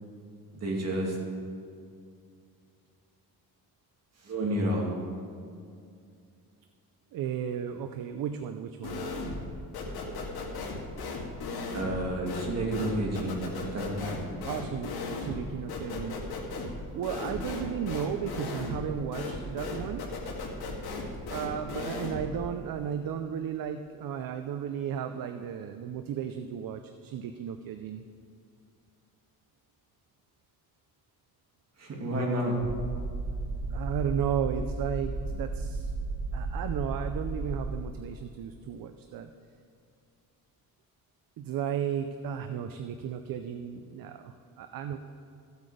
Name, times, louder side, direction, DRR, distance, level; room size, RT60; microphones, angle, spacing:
voice 1, 0.5-1.1 4.2-4.9 11.7-13.4 13.7-14.2 31.8-32.6, right 1 dB, 45° right, -2 dB, 2.6 m, -30 dB
voice 2, 7.1-9.0 14.4-16.2 16.9-20.1 21.3-28.0 33.7-35.9 36.3-39.3 41.4-45.0, right 8 dB, 65° right, 8 dB, 0.6 m, -34 dB
sound 1, 8.8-9.5 9.7-22.4, left 3 dB, 90° left, 1.9 m, -36 dB
sound 2, 32.6-37.9, right 3 dB, 90° right, 1.0 m, -34 dB
14.5 x 8.1 x 5.0 m, 2.4 s
cardioid pair, 145°, 37 cm